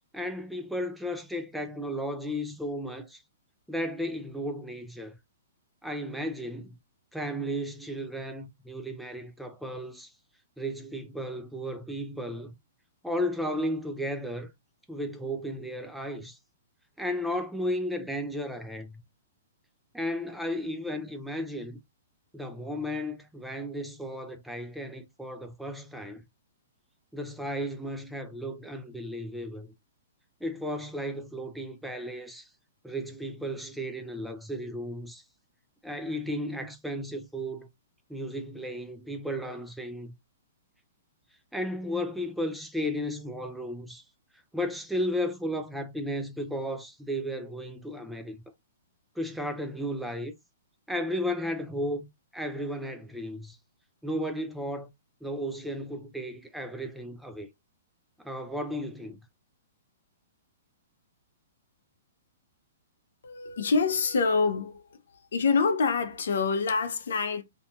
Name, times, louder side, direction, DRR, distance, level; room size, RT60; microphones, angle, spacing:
voice 1, 0.1-3.2 3.7-5.2 5.8-6.7 7.1-10.1 10.6-12.5 13.0-14.5 14.9-16.4 17.0-19.0 19.9-21.8 22.3-26.2 27.1-29.7 30.4-32.5 32.8-35.2 35.8-37.7 38.1-40.1 41.5-44.0 44.5-48.4 49.2-50.3 50.9-52.1 52.3-53.6 54.0-54.9 55.2-57.5 58.2-59.2, equal, ahead, 0.3 m, -34 dB
voice 2, 63.2-65.0 65.3-67.4, left 4 dB, 75° left, 0.6 m, -26 dB
2.7 x 2.5 x 2.2 m
hypercardioid pair, 140°, 0 cm